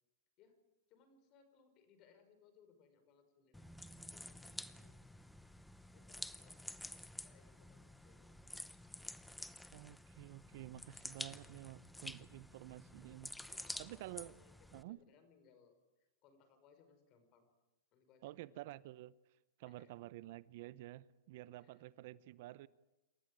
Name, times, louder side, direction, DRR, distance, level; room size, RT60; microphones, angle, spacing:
voice 1, 0.9-3.7 4.1-4.9 5.9-6.9 7.2-8.4 12.4-12.6 13.4-15.8 16.2-17.5 17.9-18.6 19.6-19.9 21.6-21.8, left 6 dB, 40° left, 8 dB, 5.6 m, -68 dB
sound 1, 3.5-14.8, left 1 dB, 5° left, 0.8 m, -50 dB
voice 2, 9.7-14.3 14.7-15.0 18.2-19.1 19.6-22.7, right 16 dB, 55° right, 19 dB, 0.7 m, -51 dB
28.0 x 13.5 x 9.1 m, 1.0 s
hypercardioid pair, 135°, 0 cm